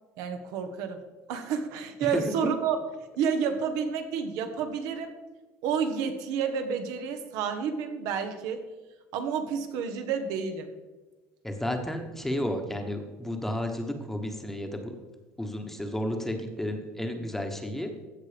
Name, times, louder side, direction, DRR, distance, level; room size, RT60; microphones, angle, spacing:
voice 1, 0.2-1.0 1.3-2.8 3.2-5.1 5.6-8.6 9.1-10.7, right 6 dB, 75° right, 7 dB, 1.3 m, -30 dB
voice 2, 2.1-2.5 11.4-15.0 15.4-17.9, left 1 dB, 5° left, 5 dB, 1.2 m, -32 dB
15.5 x 6.0 x 5.1 m, 1.2 s
cardioid pair, 140°, 6 cm